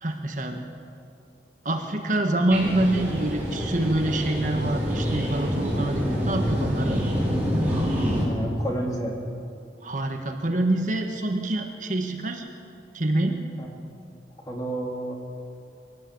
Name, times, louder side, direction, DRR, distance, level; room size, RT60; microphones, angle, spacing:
voice 1, 0.0-0.6 1.6-7.0 9.8-12.4 12.9-13.4, right 1 dB, 45° right, 4 dB, 1.5 m, -26 dB
sound 1, 2.5-8.2, equal, 10° right, 5.6 m, -26 dB
voice 2, 8.2-9.2 13.6-13.7 14.5-15.1, right 1 dB, 20° left, -1 dB, 3.5 m, -30 dB
23.5 x 18.0 x 8.6 m, 2.5 s
head